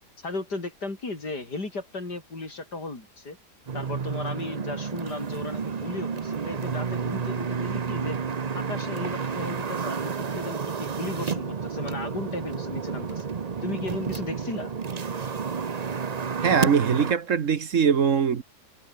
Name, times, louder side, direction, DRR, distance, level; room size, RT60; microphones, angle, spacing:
voice 1, 0.2-3.4 3.7-8.2 8.5-13.3 13.6-14.7, left 3 dB, 85° left, 5.8 m, -35 dB
sound 1, 3.7-17.1, right 5 dB, 35° right, 0.7 m, -31 dB
voice 2, 16.4-18.4, right 7 dB, 55° right, 1.4 m, -22 dB
omnidirectional pair, 1.7 m